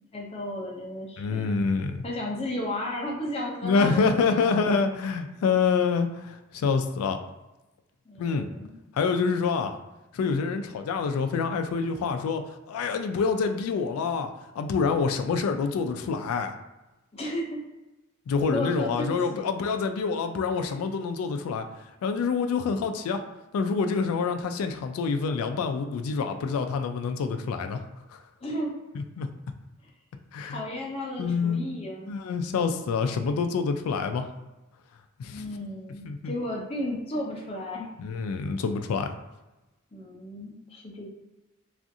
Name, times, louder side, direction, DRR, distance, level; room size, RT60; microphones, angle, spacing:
voice 1, 0.1-1.6 2.0-4.6 8.1-8.7 17.1-17.6 18.5-19.5 28.4-28.8 29.8-29.9 30.4-32.2 35.3-37.9 39.9-41.1, left 1 dB, 25° left, -2 dB, 0.5 m, -34 dB
voice 2, 1.2-2.0 3.6-7.2 8.2-8.5 8.9-9.7 10.1-14.3 14.6-16.5 18.3-21.7 22.0-23.2 23.5-27.8 28.1-28.2 29.0-29.3 30.3-30.6 31.2-31.7 32.1-34.3 35.2-35.4 36.0-36.3 38.0-39.1, left 5 dB, 85° left, 7 dB, 0.3 m, -27 dB
2.4 x 2.4 x 2.6 m, 1.0 s
head